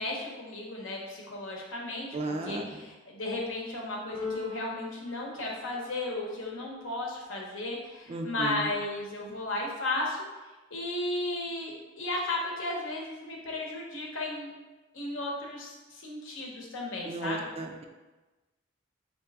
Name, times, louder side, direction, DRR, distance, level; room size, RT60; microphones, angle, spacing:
voice 1, 0.0-10.2 10.7-14.5 14.9-17.5, left 2 dB, 75° left, -1 dB, 0.9 m, -34 dB
voice 2, 2.1-2.7 8.1-8.7 17.1-17.8, right 2 dB, 30° right, 3 dB, 0.3 m, -34 dB
Keyboard (musical), 4.1-6.2, left 5 dB, 25° left, 0.8 m, -41 dB
4.3 x 2.8 x 3.4 m, 1.2 s
head